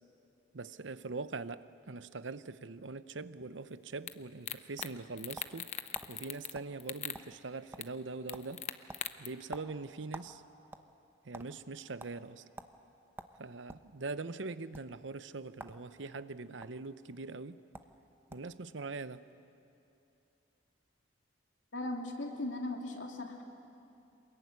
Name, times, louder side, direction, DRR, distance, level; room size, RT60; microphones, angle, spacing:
voice 1, 0.5-5.7 6.1-8.7 9.2-10.4 11.2-12.4 13.4-17.6 18.3-19.3, right 3 dB, 80° right, 0.8 m, -42 dB
sound 1, 4.1-4.2 4.5-4.9 5.2-6.5 6.8-7.2 7.8-7.9 8.3-9.3, left 9 dB, 35° left, 0.7 m, -39 dB
sound 2, 4.8-5.6 5.9-6.1 6.5-6.7 7.0-7.5 7.7-8.0 8.3-8.5 8.9-10.3 10.6-11.5 12.0-12.1 12.6-12.7 13.2-13.9 14.6-14.8 15.5-15.8 16.1-16.7 17.4-17.5 17.7-17.9 18.3-18.6, right 2 dB, 10° right, 0.9 m, -48 dB
voice 2, 21.7-23.4, left 2 dB, 85° left, 3.0 m, -38 dB
26.5 x 21.5 x 9.6 m
head